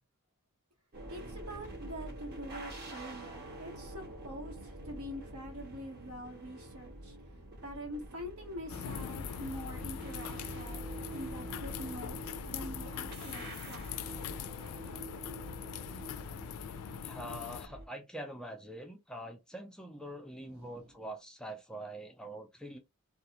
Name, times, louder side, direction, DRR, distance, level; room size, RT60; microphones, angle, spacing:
sound 1, 0.9-17.9, right 1 dB, 45° right, 0.9 m, -46 dB
voice 1, 1.1-7.2 7.6-13.9 20.4-20.9, equal, 70° right, 1.1 m, -45 dB
sound 2, 8.7-17.7, left 9 dB, 85° left, 0.3 m, -42 dB
voice 2, 17.0-22.8, right 1 dB, 5° left, 0.4 m, -44 dB
2.4 x 2.2 x 2.8 m
head